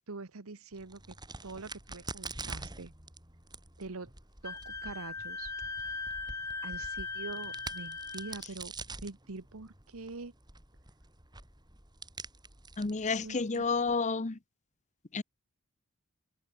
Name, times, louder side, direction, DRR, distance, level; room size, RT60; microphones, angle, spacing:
voice 1, 0.1-1.2 1.4-2.9 3.8-4.1 4.4-5.5 6.6-8.7 9.0-10.3 13.2-14.0, right 3 dB, 75° right, 1.2 m, -44 dB
Crack, 0.7-14.0, right 3 dB, 20° right, 6.8 m, -47 dB
Wind instrument woodwind instrument, 4.4-8.4, left 4 dB, 15° left, 0.4 m, -39 dB
voice 2, 12.8-14.4 15.1-15.2, left 4 dB, 35° left, 0.8 m, -30 dB
head